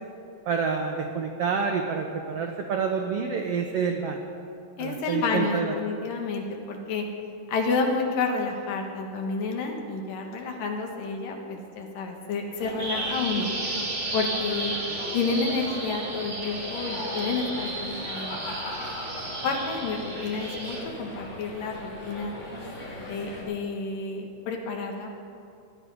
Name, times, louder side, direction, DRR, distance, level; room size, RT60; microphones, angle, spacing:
voice 1, 0.5-4.2 4.8-5.7, right 5 dB, 80° right, 3 dB, 1.3 m, -28 dB
voice 2, 4.8-7.1 7.5-13.5 14.1-14.8 15.1-18.7 19.4-22.3 23.0-25.2, left 4 dB, 80° left, 2 dB, 3.1 m, -30 dB
sound 1, 12.6-23.4, left 1 dB, 45° left, 4.5 m, -38 dB
Bird vocalization bird call bird song, 12.8-20.8, right 2 dB, 25° right, 1.4 m, -34 dB
17.0 x 11.5 x 4.9 m, 2.5 s
omnidirectional pair, 3.8 m